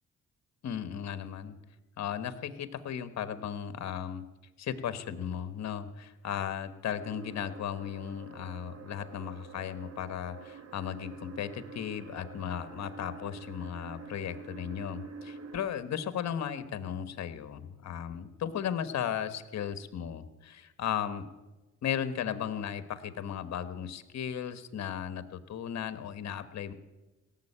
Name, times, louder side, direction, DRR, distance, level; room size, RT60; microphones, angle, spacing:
voice 1, 0.6-1.6 2.0-4.2 4.6-21.3 21.8-26.7, left 9 dB, 60° left, 12 dB, 1.3 m, -36 dB
sound 1, 7.0-15.7, right 5 dB, 55° right, 1.7 m, -47 dB
17.5 x 7.5 x 10.0 m, 1.1 s
cardioid pair, 90°, 30 cm